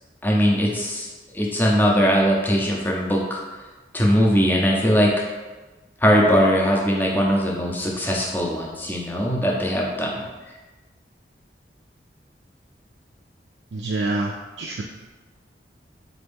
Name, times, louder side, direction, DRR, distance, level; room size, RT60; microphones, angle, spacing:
voice 1, 0.2-1.1 1.3-3.4 3.9-5.2 6.0-10.2, equal, 10° left, -2 dB, 0.5 m, -20 dB
voice 2, 13.7-14.8, right 2 dB, 75° right, 0 dB, 0.3 m, -27 dB
4.1 x 2.6 x 3.4 m, 1.2 s
head